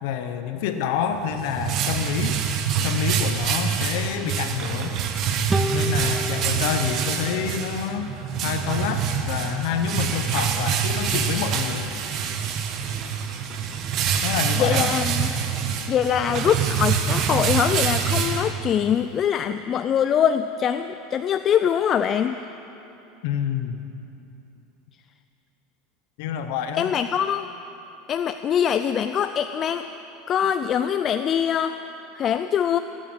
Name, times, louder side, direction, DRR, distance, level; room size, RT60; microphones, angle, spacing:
voice 1, 0.0-2.4 2.8-5.0 5.7-8.1 8.4-11.9 14.2-14.9 23.2-23.8 26.2-26.9, left 8 dB, 70° left, 8 dB, 1.1 m, -27 dB
sound 1, 1.1-18.9, right 7 dB, 45° right, 1.3 m, -26 dB
sound 2, 5.5-8.9, right 2 dB, 15° right, 0.8 m, -31 dB
voice 2, 14.6-15.3 15.9-22.4 26.8-27.5 28.1-29.8 30.3-31.8 32.1-32.8, left 8 dB, 35° left, 10 dB, 0.4 m, -23 dB
17.5 x 9.2 x 8.1 m, 2.9 s
supercardioid pair, 115°, 0 cm